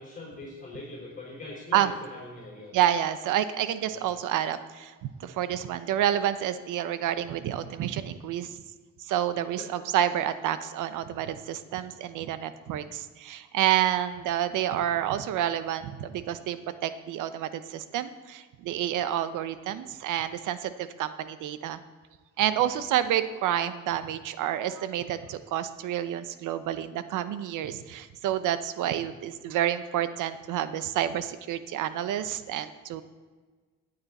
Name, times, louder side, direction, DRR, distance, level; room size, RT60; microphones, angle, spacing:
voice 1, 0.0-2.8 3.9-4.1 9.3-9.7, left 2 dB, 25° left, -5 dB, 4.6 m, -42 dB
voice 2, 2.7-4.9 5.2-8.6 9.0-21.8 22.4-33.0, right 11 dB, 85° right, 12 dB, 0.8 m, -29 dB
15.0 x 9.6 x 4.2 m, 1.4 s
cardioid pair, 90°, 30 cm